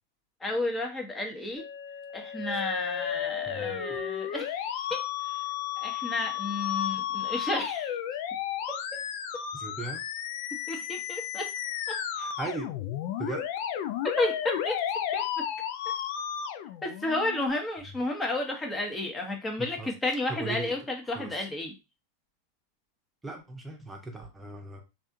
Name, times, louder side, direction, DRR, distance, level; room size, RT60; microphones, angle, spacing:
voice 1, 0.4-1.6 2.1-5.4 5.8-7.9 8.7-9.0 10.7-11.5 11.9-12.0 14.0-14.8 15.1-15.2 16.8-21.7, left 2 dB, 15° left, 2 dB, 1.0 m, -32 dB
Musical instrument, 1.6-17.5, left 10 dB, 55° left, 0.4 m, -33 dB
voice 2, 3.5-4.0 9.5-10.0 12.1-12.7 13.2-13.5 17.9-18.0 19.6-19.9 20.3-20.7 21.0-21.5 23.2-24.8, right 3 dB, 10° right, 1 dB, 0.9 m, -38 dB
3.3 x 2.5 x 2.6 m, 0.27 s
figure-of-eight pair, 95°, 0 cm